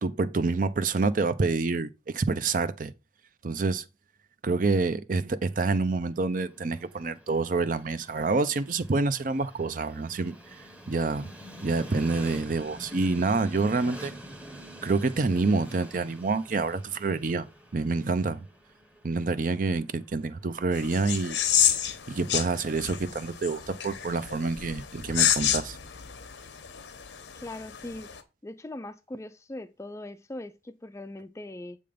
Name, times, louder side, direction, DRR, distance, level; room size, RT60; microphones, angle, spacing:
voice 1, 0.0-2.9 3.4-3.8 4.4-10.4 10.9-11.3 11.6-14.1 14.8-17.5 17.7-18.4 19.0-21.4 22.1-25.8, right 3 dB, 45° right, 0.5 m, -27 dB
Train, 6.2-22.2, equal, 10° right, 0.9 m, -47 dB
sound 1, 20.7-28.2, left 10 dB, 85° left, 0.9 m, -29 dB
voice 2, 27.4-28.1 28.4-31.8, left 1 dB, 15° left, 0.4 m, -40 dB
7.7 x 3.5 x 5.1 m
head